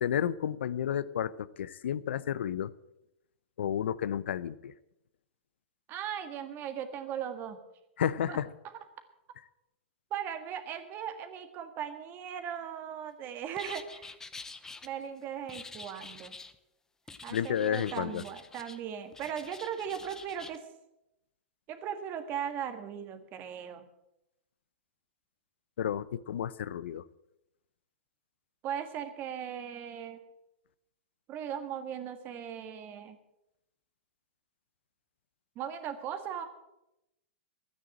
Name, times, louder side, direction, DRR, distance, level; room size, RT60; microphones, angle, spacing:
voice 1, 0.0-2.7 3.6-4.7 8.0-8.5 17.3-18.2 25.8-27.0, left 9 dB, 75° left, 17 dB, 0.6 m, -31 dB
voice 2, 5.9-7.6 8.3-8.4 10.1-14.2 14.8-16.3 17.2-20.7 21.7-23.9 28.6-30.2 31.3-33.2 35.5-36.5, right 9 dB, 35° right, 8 dB, 1.7 m, -38 dB
sound 1, 13.6-14.9 15.5-16.6 17.1-18.8 19.1-20.6, left 3 dB, 10° left, 0.7 m, -47 dB
12.5 x 9.7 x 7.5 m, 0.87 s
hypercardioid pair, 135°, 6 cm